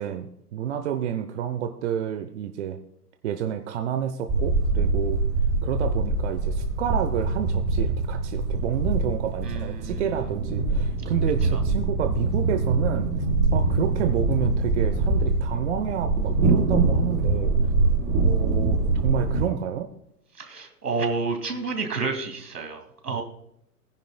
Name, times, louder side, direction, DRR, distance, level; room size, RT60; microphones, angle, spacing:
voice 1, 0.0-2.8 3.2-5.2 5.6-13.1 13.5-17.5 18.2-19.9 23.1-23.2, right 9 dB, 45° right, 8 dB, 0.9 m, -29 dB
sound 1, 4.3-19.5, right 3 dB, 30° right, 4.2 m, -24 dB
voice 2, 9.4-10.0 11.5-11.6 20.4-23.2, right 4 dB, 75° right, 5 dB, 2.6 m, -30 dB
19.0 x 10.0 x 2.3 m, 0.73 s
figure-of-eight pair, 110°, 46 cm